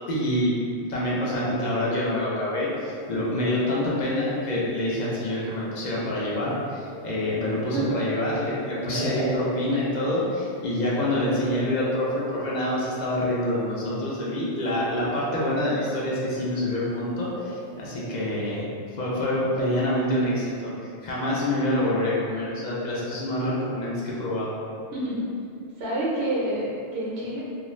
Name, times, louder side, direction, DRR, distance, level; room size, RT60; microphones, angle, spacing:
voice 1, 0.1-0.5 0.9-18.7 19.0-24.5, left 1 dB, 55° left, -6 dB, 0.5 m, -26 dB
sound 1, 2.6-5.9 6.5-12.8 14.0-14.1 16.3-18.6, right 1 dB, 35° right, 0.7 m, -39 dB
voice 2, 24.9-25.3 25.5-27.4, right 1 dB, 65° right, -6 dB, 0.9 m, -28 dB
2.4 x 2.4 x 3.0 m, 2.4 s
omnidirectional pair, 1.2 m